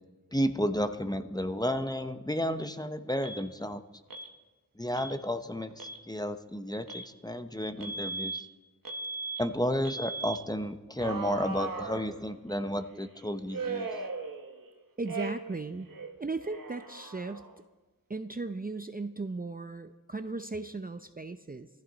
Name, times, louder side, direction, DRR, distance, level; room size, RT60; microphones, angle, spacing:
voice 1, 0.3-3.8 4.8-8.5 9.4-13.9, equal, 10° left, 9 dB, 0.9 m, -32 dB
Alarm, 3.2-3.4 4.1-4.3 4.9-5.2 5.7-6.0 6.9-7.1 7.8-8.4 8.9-9.4 9.9-10.4 11.0-12.5 13.5-14.7 15.1-15.6 15.9-17.6, right 3 dB, 60° right, 1.4 m, -38 dB
voice 2, 15.0-15.9 16.2-17.4 18.1-21.7, right 3 dB, 25° right, 8 dB, 0.6 m, -36 dB
18.5 x 14.5 x 4.1 m, 1.2 s
cardioid pair, 45°, 37 cm